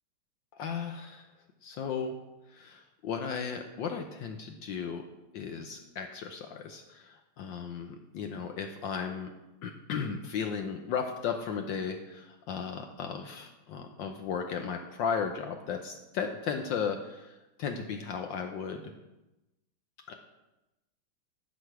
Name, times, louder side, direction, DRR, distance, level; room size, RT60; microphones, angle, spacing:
voice 1, 0.6-1.3 1.6-2.1 2.5-5.0 5.3-9.3 9.6-18.8 20.1-20.2, left 6 dB, 70° left, 5 dB, 1.3 m, -35 dB
11.0 x 6.1 x 4.8 m, 0.98 s
omnidirectional pair, 2.3 m